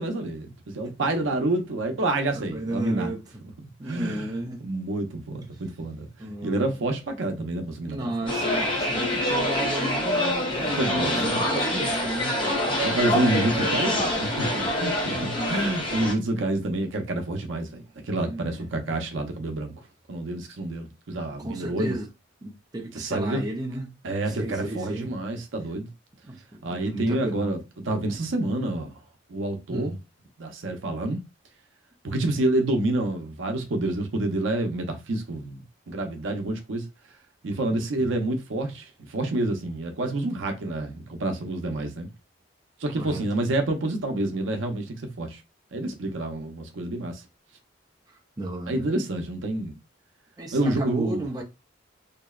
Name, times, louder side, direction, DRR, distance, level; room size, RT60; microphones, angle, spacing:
voice 1, 0.0-3.1 3.6-8.4 10.6-11.4 12.8-15.2 15.5-19.7 20.1-21.9 22.9-23.4 24.0-25.9 26.6-29.0 29.3-29.9 30.4-31.2 32.0-36.9 37.4-42.1 42.8-45.4 45.7-47.2 48.7-49.7 50.5-51.2, right 2 dB, 80° right, 0.6 m, -28 dB
voice 2, 2.3-3.2 3.8-4.6 6.2-6.7 7.9-12.4 13.1-13.9 15.1-15.6 18.2-18.7 21.4-22.1 22.4-23.9 24.3-25.2 26.2-27.6 29.7-30.0 32.1-32.3 37.7-38.1 43.0-43.2 48.4-48.8 50.4-51.4, right 1 dB, 20° right, 0.4 m, -34 dB
sound 1, 8.3-16.1, left 1 dB, 25° left, 0.6 m, -26 dB
2.7 x 2.0 x 2.2 m
head